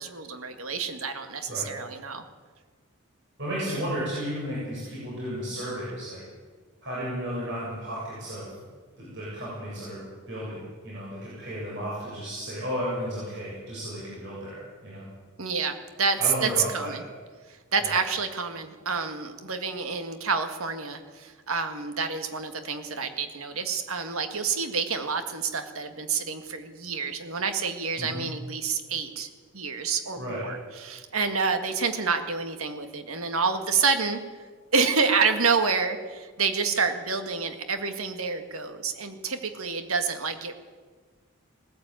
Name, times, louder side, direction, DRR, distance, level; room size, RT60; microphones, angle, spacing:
voice 1, 0.0-2.2 15.4-17.0 17.5-29.3 29.5-34.2 34.7-40.5, right 5 dB, 80° right, 7 dB, 1.9 m, -28 dB
voice 2, 3.4-6.2 6.8-8.5 9.0-10.0 10.3-15.0 16.2-16.9 17.8-18.0 28.0-28.2 30.2-30.4, equal, 55° right, -7 dB, 7.8 m, -33 dB
19.5 x 14.5 x 9.1 m, 1.5 s
head